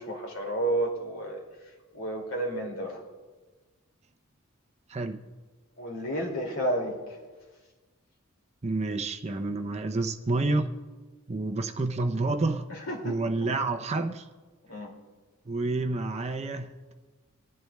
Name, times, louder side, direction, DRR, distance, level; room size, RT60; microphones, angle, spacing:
voice 1, 0.0-1.4 1.9-3.0 5.8-7.2 12.7-13.5 14.7-14.9, right 1 dB, 70° left, 0 dB, 2.4 m, -31 dB
voice 2, 8.6-10.7 11.3-12.7 13.0-14.3 15.5-16.9, right 2 dB, 30° right, 5 dB, 0.6 m, -29 dB
24.5 x 11.0 x 2.3 m, 1.3 s
head